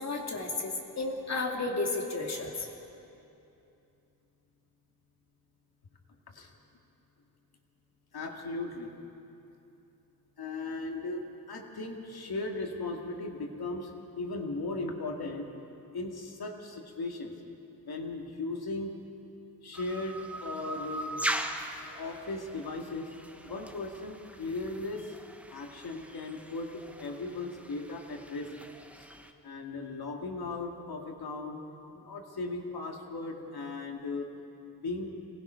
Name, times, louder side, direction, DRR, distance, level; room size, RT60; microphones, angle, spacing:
voice 1, 0.0-2.7, left 3 dB, 45° left, 1 dB, 2.6 m, -33 dB
voice 2, 8.1-8.9 10.4-15.5 15.9-17.3 17.8-19.0 19.6-21.4 22.0-23.1 23.4-25.1 25.5-28.5 29.0-29.1 29.4-31.6 31.9-34.3 34.7-35.1, left 3 dB, 80° left, 1 dB, 2.3 m, -37 dB
Eastern Whipbird, 19.7-29.3, right 1 dB, 5° right, 1.0 m, -40 dB
25.0 x 19.5 x 5.8 m, 2.8 s
wide cardioid pair, 125°, 37 cm